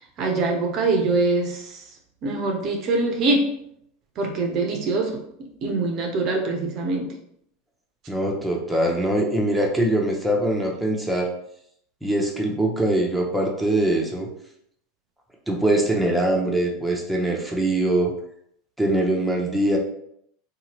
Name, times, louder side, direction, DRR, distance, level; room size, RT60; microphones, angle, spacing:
voice 1, 0.2-1.7 2.2-3.6 4.2-5.2 5.6-7.1, right 3 dB, 50° right, 3 dB, 0.6 m, -23 dB
voice 2, 8.1-11.3 12.0-14.3 15.5-18.1 18.8-19.8, right 1 dB, 5° right, -1 dB, 0.7 m, -22 dB
2.7 x 2.3 x 3.0 m, 0.71 s
hypercardioid pair, 85°, 0 cm